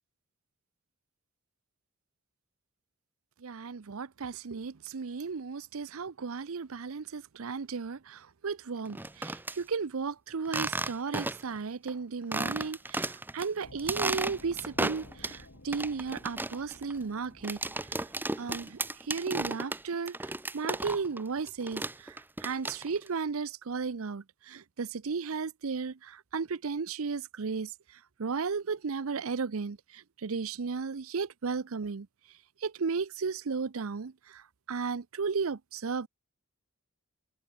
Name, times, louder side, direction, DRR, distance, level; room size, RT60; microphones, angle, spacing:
voice 1, 3.4-17.6 18.4-18.8 19.1-27.7 28.2-32.1 32.6-34.4 34.7-36.1, right 5 dB, 75° right, 0.6 m, -35 dB
sound 1, 8.9-9.6 10.4-11.6 11.9-12.0 12.3-13.5 13.8-15.4 15.7-21.2 21.5-23.1, right 2 dB, 10° right, 0.8 m, -34 dB
sound 2, 13.6-19.2, left 1 dB, 65° left, 3.0 m, -54 dB
head